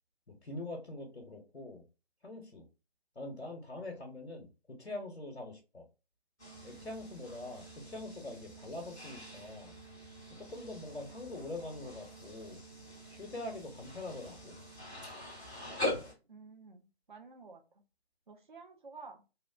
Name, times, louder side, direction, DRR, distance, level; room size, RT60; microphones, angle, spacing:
voice 1, 0.3-1.8 2.2-2.6 3.2-5.8 6.6-9.7 10.3-12.6 13.1-14.6, left 2 dB, 85° left, 1 dB, 0.8 m, -44 dB
sound 1, 6.4-16.1, left 1 dB, 5° right, 0.6 m, -43 dB
voice 2, 16.3-17.8 18.3-19.2, right 4 dB, 50° right, 5 dB, 0.6 m, -52 dB
2.9 x 2.0 x 2.4 m, 0.31 s
figure-of-eight pair, 145°, 32 cm